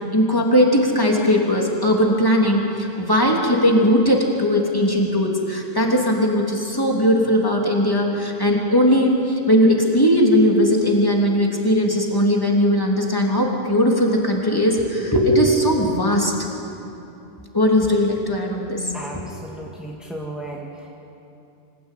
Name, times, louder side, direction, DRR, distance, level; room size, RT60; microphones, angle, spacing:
voice 1, 0.1-16.3 17.5-19.2, equal, 20° left, -1 dB, 3.3 m, -19 dB
voice 2, 18.9-20.9, right 1 dB, ahead, -2 dB, 2.0 m, -34 dB
26.0 x 17.0 x 9.4 m, 2.8 s
omnidirectional pair, 1.1 m